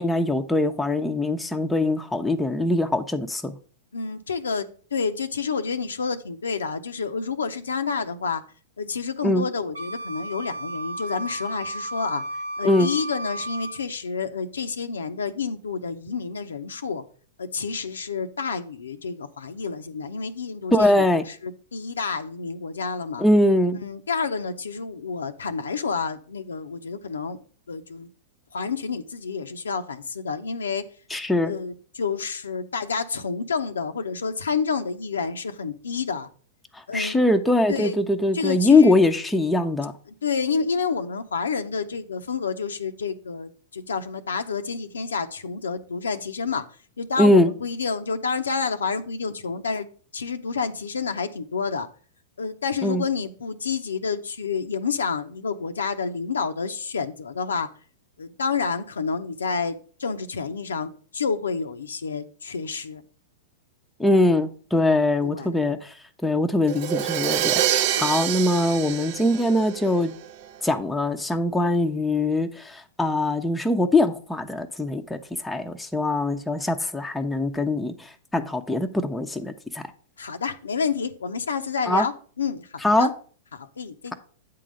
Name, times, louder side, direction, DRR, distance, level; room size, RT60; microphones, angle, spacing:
voice 1, 0.0-3.5 9.2-9.5 12.6-12.9 20.7-21.2 23.2-23.8 31.1-31.5 36.9-39.9 47.2-47.5 52.8-53.0 64.0-65.9 66.2-67.6 68.0-70.1 70.6-75.2 75.4-79.8 81.9-82.1 82.8-83.1, left 2 dB, 5° left, 0.7 m, -22 dB
voice 2, 3.9-8.4 8.8-12.2 12.6-17.0 17.4-23.2 23.8-27.4 27.7-28.1 28.5-30.8 31.4-36.3 36.9-37.2 37.7-38.0 38.3-39.0 40.1-46.6 47.0-51.9 52.4-57.7 58.2-63.0 65.2-65.7 68.0-68.3 80.2-82.1 82.4-83.1 83.5-84.1, left 5 dB, 85° left, 0.6 m, -29 dB
Wind instrument woodwind instrument, 9.7-13.8, right 1 dB, 85° right, 1.5 m, -33 dB
Crash cymbal, 66.7-70.4, right 11 dB, 55° right, 0.6 m, -26 dB
8.4 x 3.8 x 6.3 m
hypercardioid pair, 110°, 0 cm